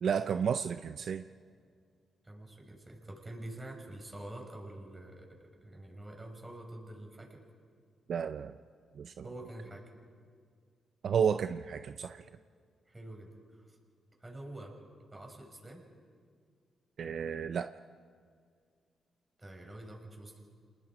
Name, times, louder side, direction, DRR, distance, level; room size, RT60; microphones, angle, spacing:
voice 1, 0.0-1.2 8.1-8.6 9.0-9.2 11.0-12.2 17.0-17.7, right 7 dB, 65° right, 10 dB, 0.5 m, -32 dB
voice 2, 2.2-7.4 9.2-9.8 12.9-13.8 14.2-14.7 15.1-15.8 19.4-20.3, right 1 dB, 20° right, 1 dB, 6.2 m, -46 dB
28.0 x 20.0 x 5.0 m, 2.1 s
supercardioid pair, 60°, 0 cm